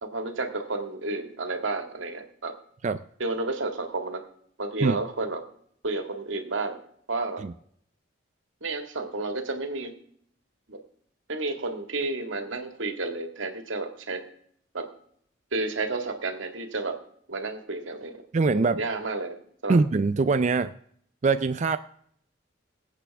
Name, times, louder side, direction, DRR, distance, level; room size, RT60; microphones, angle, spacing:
voice 1, 0.0-2.5 3.2-4.2 4.6-5.4 5.8-6.8 7.1-7.4 8.6-9.9 10.7-10.8 11.3-14.2 14.7-14.9 15.5-17.0 17.3-18.2 18.6-19.4 19.6-19.8, right 3 dB, 85° right, 5 dB, 2.0 m, -31 dB
voice 2, 18.3-18.8 19.7-20.7 21.2-21.8, right 4 dB, 40° right, 10 dB, 0.4 m, -23 dB
22.5 x 8.3 x 3.5 m, 0.64 s
head